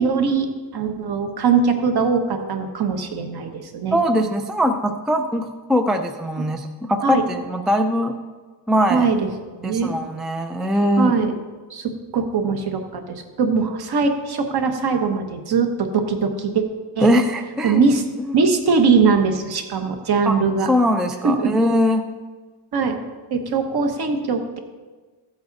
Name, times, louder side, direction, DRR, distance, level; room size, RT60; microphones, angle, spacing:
voice 1, 0.0-4.0 6.4-6.5 7.0-7.2 8.9-9.3 9.6-9.9 11.0-11.3 11.7-16.6 16.9-17.1 17.6-18.0 18.3-20.7 21.2-21.5 22.7-23.0 23.3-24.6, right 5 dB, 50° right, 5 dB, 1.3 m, -21 dB
voice 2, 3.9-8.1 8.7-9.1 9.6-11.1 17.0-17.8 18.3-18.4 20.2-20.3 20.7-22.0, equal, ahead, 5 dB, 0.3 m, -21 dB
14.5 x 8.0 x 4.1 m, 1.3 s
cardioid pair, 165°, 49 cm